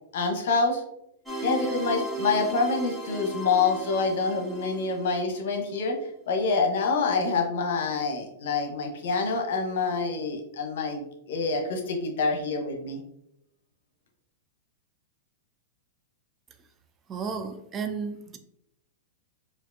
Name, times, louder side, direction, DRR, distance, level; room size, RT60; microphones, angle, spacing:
voice 1, 0.1-0.8 1.4-5.9 6.3-13.0, left 4 dB, 65° left, 3 dB, 0.8 m, -26 dB
sound 1, 1.3-5.4, right 2 dB, 5° right, 1.2 m, -35 dB
voice 2, 17.1-18.4, right 5 dB, 25° right, 8 dB, 0.4 m, -33 dB
4.4 x 2.4 x 2.6 m, 0.78 s
hypercardioid pair, 110°, 0 cm